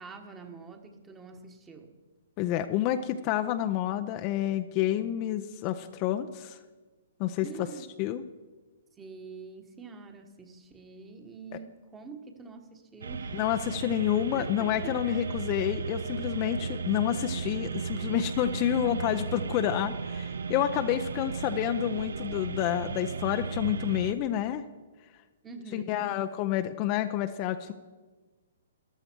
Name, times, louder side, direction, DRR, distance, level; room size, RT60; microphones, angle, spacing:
voice 1, 0.0-1.9 7.4-7.8 9.0-13.6 14.3-15.2 25.4-26.1, right 4 dB, 15° right, 5 dB, 1.4 m, -46 dB
voice 2, 2.4-6.6 7.2-7.7 8.0-8.2 13.3-24.6 25.7-27.7, left 11 dB, 35° left, 9 dB, 0.6 m, -29 dB
sound 1, 13.0-24.1, right 5 dB, 70° right, 0.5 m, -35 dB
14.0 x 11.5 x 4.6 m, 1.3 s
figure-of-eight pair, 125°, 0 cm